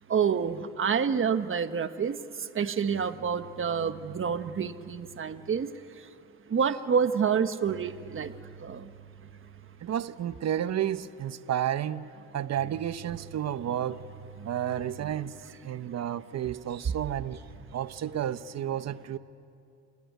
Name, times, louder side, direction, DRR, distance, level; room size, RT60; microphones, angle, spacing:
voice 1, 0.1-2.2 2.5-5.7 6.5-8.3 8.6-8.9, right 7 dB, 45° right, 1.3 m, -28 dB
voice 2, 9.8-12.0 12.3-14.0 14.4-17.4 17.7-19.2, right 10 dB, 60° right, 1.0 m, -31 dB
29.0 x 19.5 x 9.5 m
cardioid pair, 90°, 30 cm